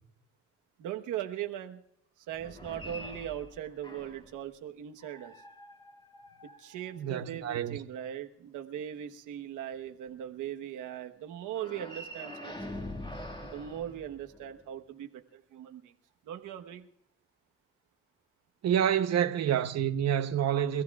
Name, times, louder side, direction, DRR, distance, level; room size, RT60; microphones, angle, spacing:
voice 1, 0.8-1.8 2.2-5.3 6.4-12.6 13.4-15.9 16.2-16.9, right 11 dB, 85° right, 1.2 m, -39 dB
sound 1, 2.3-4.4 5.0-7.4 11.5-14.7, left 1 dB, 15° left, 2.0 m, -45 dB
voice 2, 7.0-7.8 18.6-20.8, right 9 dB, 60° right, 0.9 m, -28 dB
29.0 x 14.5 x 2.4 m
cardioid pair, 90°, 30 cm